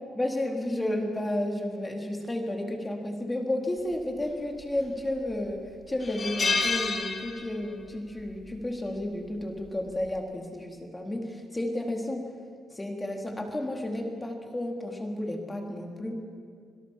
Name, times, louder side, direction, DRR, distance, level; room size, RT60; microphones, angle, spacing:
voice 1, 0.1-5.6 5.9-12.2 12.7-16.2, left 1 dB, 15° left, 2 dB, 3.7 m, -32 dB
sound 1, 4.6-5.1 5.5-5.6 6.0-7.8 8.1-8.3 9.6-9.9, left 4 dB, 35° left, 2.2 m, -29 dB
26.5 x 17.5 x 7.5 m, 2.2 s
cardioid pair, 90°, 0 cm